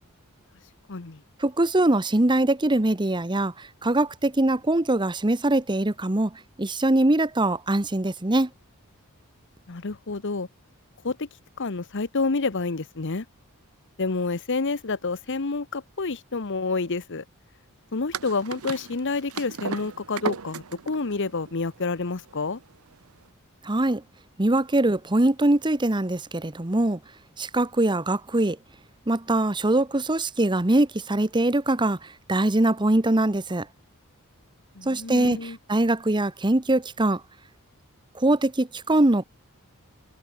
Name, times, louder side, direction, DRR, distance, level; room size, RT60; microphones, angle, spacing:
voice 1, 0.9-1.2 9.7-10.5 11.0-11.3 11.6-13.2 14.0-17.2 17.9-22.6 34.7-35.6, left 3 dB, 55° left, 1.0 m, -28 dB
voice 2, 1.4-6.3 6.6-8.5 23.6-24.0 24.4-27.0 27.4-28.6 29.1-33.7 34.9-37.2 38.1-39.2, right 1 dB, 20° right, 1.0 m, -22 dB
sound 1, 18.1-23.2, right 5 dB, 75° right, 0.9 m, -36 dB
head